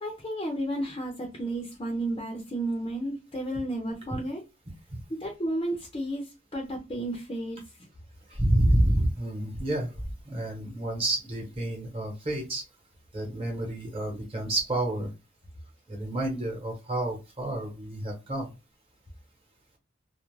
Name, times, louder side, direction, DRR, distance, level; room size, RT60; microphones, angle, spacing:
voice 1, 0.0-4.4 5.1-7.6, right 1 dB, 25° left, 0.5 m, -32 dB
voice 2, 8.3-9.9 10.2-12.6 13.1-15.1 15.9-18.5, right 1 dB, 30° right, 0.9 m, -28 dB
2.3 x 2.1 x 3.1 m
head